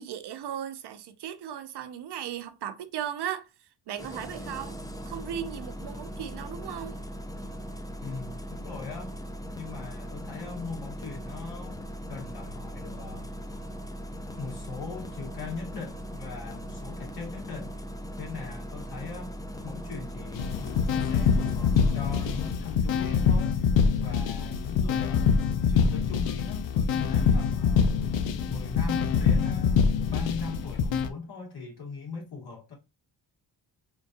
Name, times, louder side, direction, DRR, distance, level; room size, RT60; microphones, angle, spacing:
voice 1, 0.0-3.5 3.9-4.8 5.0-7.0, right 9 dB, 65° right, 0.7 m, -36 dB
Engine starting, 4.0-22.5, equal, 10° left, 0.5 m, -39 dB
voice 2, 8.0-9.1 9.5-11.8 12.1-13.3 14.3-17.7 18.2-19.4 19.6-23.6 24.0-25.3 25.7-28.0 28.5-32.7, left 4 dB, 60° left, 1.9 m, -40 dB
sound 1, 20.3-31.1, left 6 dB, 80° left, 0.7 m, -25 dB
3.7 x 2.6 x 2.5 m
cardioid pair, 65°, 44 cm